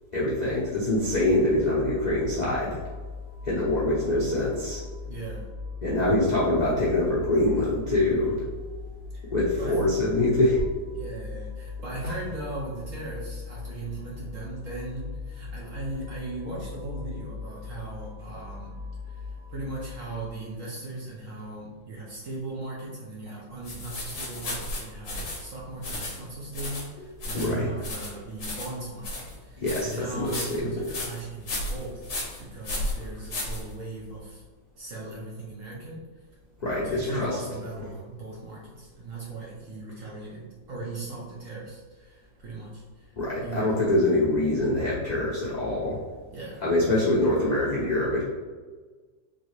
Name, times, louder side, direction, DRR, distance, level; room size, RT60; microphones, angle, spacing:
voice 1, 0.1-2.8 3.4-4.8 5.8-8.4 9.3-10.6 12.0-12.1 27.3-27.7 29.6-30.9 36.6-37.4 43.2-46.0 46.6-48.2, left 1 dB, 75° left, -8 dB, 0.4 m, -24 dB
sound 1, 0.8-20.3, left 4 dB, 20° right, 1.1 m, -40 dB
voice 2, 5.1-5.5 9.1-9.3 9.6-9.8 10.9-18.8 19.0-34.4 34.8-36.0 36.8-43.8 46.3-46.6, right 2 dB, 55° right, -5 dB, 0.9 m, -38 dB
sound 2, 23.6-34.1, left 1 dB, 45° left, 1.1 m, -35 dB
4.0 x 3.1 x 3.1 m, 1.4 s
omnidirectional pair, 2.1 m